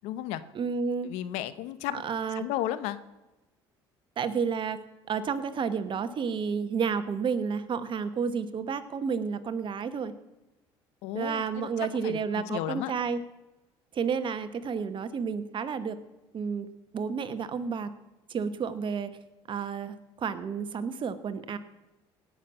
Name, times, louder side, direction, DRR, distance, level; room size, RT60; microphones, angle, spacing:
voice 1, 0.0-0.4 1.0-2.0 2.4-3.0 11.0-12.9, left 13 dB, 80° left, 14 dB, 0.8 m, -34 dB
voice 2, 0.5-1.1 1.9-2.5 4.2-10.1 11.1-13.2 13.9-16.0 16.3-17.9 18.3-19.2 19.5-21.6, right 6 dB, 45° right, 12 dB, 1.2 m, -31 dB
17.5 x 6.5 x 7.5 m, 1.0 s
supercardioid pair, 80°, 11 cm